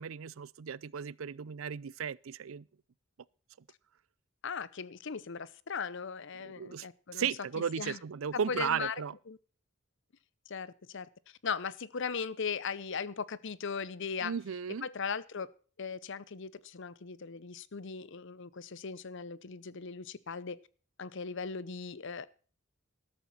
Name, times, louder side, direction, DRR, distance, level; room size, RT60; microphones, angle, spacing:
voice 1, 0.0-2.6 6.4-9.1 14.2-14.9, right 7 dB, 80° right, 0.5 m, -35 dB
voice 2, 4.4-7.3 7.8-8.0 8.5-9.0 9.3-9.4 10.5-11.1 11.4-14.3 14.8-15.5 15.8-20.6 21.0-22.3, left 5 dB, 65° left, 0.8 m, -38 dB
13.0 x 12.5 x 4.2 m
head